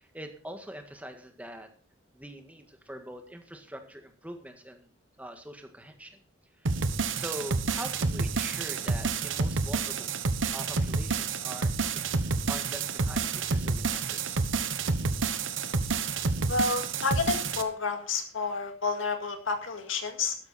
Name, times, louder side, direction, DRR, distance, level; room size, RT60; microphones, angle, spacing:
voice 1, 0.0-1.7 2.1-4.9 5.2-6.2 6.6-6.7 7.1-10.1 10.4-14.4, right 1 dB, 10° right, 5 dB, 1.7 m, -43 dB
sound 1, 6.7-17.6, right 4 dB, 75° right, 1.1 m, -29 dB
voice 2, 16.5-20.4, left 4 dB, 80° left, 6 dB, 2.0 m, -30 dB
12.5 x 11.0 x 4.2 m, 0.43 s
head